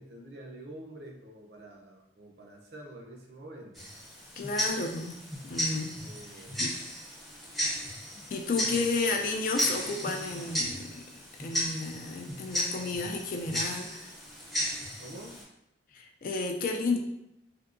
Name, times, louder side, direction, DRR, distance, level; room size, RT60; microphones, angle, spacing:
voice 1, 0.0-3.9 6.0-6.7 8.5-8.7 15.0-15.4, right 1 dB, 60° right, 0 dB, 0.6 m, -47 dB
Tick-tock, 3.7-15.4, equal, ahead, 0.6 m, -35 dB
voice 2, 4.4-5.9 6.6-6.7 8.3-11.1 11.4-14.1 15.9-17.0, left 3 dB, 50° left, 3 dB, 0.3 m, -32 dB
3.5 x 2.7 x 2.5 m, 0.84 s
head